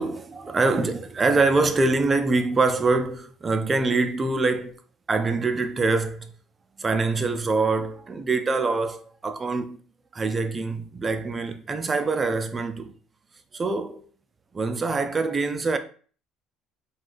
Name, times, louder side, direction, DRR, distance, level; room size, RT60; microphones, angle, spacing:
voice 1, 0.0-4.8 5.1-6.3 6.8-9.8 10.1-12.9 13.5-14.0 14.5-15.8, right 3 dB, 25° right, 0.4 m, -24 dB
3.4 x 2.2 x 2.5 m
supercardioid pair, 105°, 0 cm